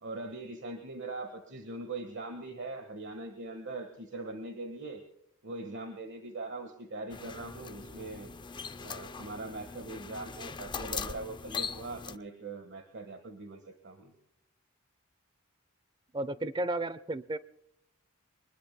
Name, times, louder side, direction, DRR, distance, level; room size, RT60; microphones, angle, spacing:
voice 1, 0.0-5.0 5.4-8.3 8.8-14.1, right 2 dB, 55° right, 6 dB, 1.5 m, -41 dB
sound 1, 7.1-12.2, left 5 dB, 20° left, 0.5 m, -40 dB
voice 2, 16.1-17.4, right 2 dB, 20° right, 16 dB, 0.6 m, -33 dB
24.0 x 20.5 x 2.2 m, 0.79 s
head